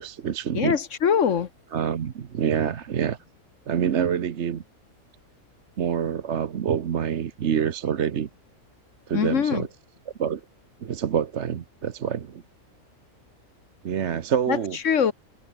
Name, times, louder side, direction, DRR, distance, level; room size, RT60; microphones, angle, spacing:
voice 1, 0.0-0.8 1.7-3.2 3.7-4.6 5.8-8.3 9.1-9.7 10.2-10.4 10.8-12.4 13.8-14.8, right 8 dB, 60° right, 1.2 m, -26 dB
voice 2, 0.5-1.5 9.1-9.7 14.5-15.1, left 7 dB, 70° left, 1.4 m, -23 dB
omnidirectional pair, 1.4 m